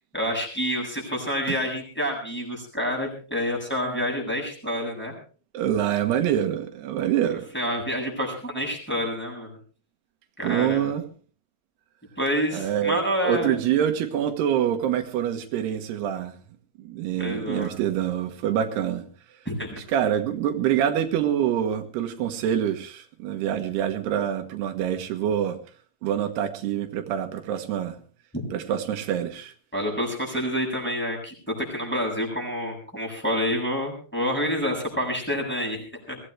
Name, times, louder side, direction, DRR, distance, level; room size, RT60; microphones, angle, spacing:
voice 1, 0.1-5.1 7.5-9.6 10.4-10.9 12.2-13.6 17.2-17.7 19.5-19.8 28.3-28.5 29.7-36.2, equal, ahead, -1 dB, 7.1 m, -28 dB
voice 2, 5.5-7.5 10.4-11.0 12.5-16.3 16.8-19.0 19.9-25.6 26.0-28.0 28.5-29.5, right 10 dB, 85° right, 6 dB, 3.4 m, -26 dB
23.0 x 17.0 x 3.3 m, 0.39 s
omnidirectional pair, 4.6 m